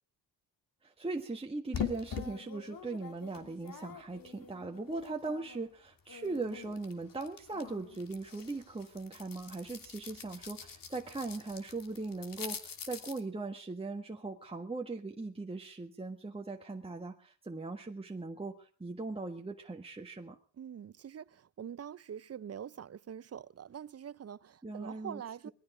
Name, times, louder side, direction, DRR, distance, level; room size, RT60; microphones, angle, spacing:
voice 1, 0.8-20.4 24.6-25.5, right 3 dB, 15° right, 1.6 m, -39 dB
sound 1, 1.7-5.7 6.0-13.2, left 7 dB, 50° left, 3.0 m, -44 dB
voice 2, 20.6-25.5, right 8 dB, 35° right, 0.7 m, -44 dB
20.5 x 14.0 x 5.0 m
cardioid pair, 90°, 42 cm